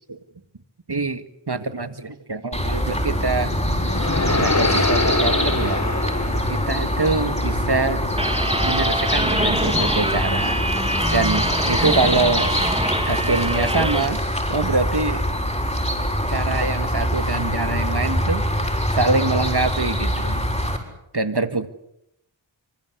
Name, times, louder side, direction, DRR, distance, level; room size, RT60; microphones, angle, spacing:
voice 1, 0.9-3.5 4.3-5.8 6.5-8.1 8.6-10.6 11.1-12.6 13.1-14.2 14.5-15.2 16.3-20.5 21.1-21.7, right 3 dB, 55° right, 10 dB, 2.1 m, -24 dB
sound 1, 2.5-20.8, equal, 15° left, 6.6 m, -24 dB
sound 2, 3.1-7.4, left 2 dB, 35° left, 1.7 m, -25 dB
sound 3, 8.2-14.1, right 1 dB, 10° right, 1.7 m, -24 dB
25.5 x 25.5 x 8.3 m, 0.78 s
wide cardioid pair, 40°, 47 cm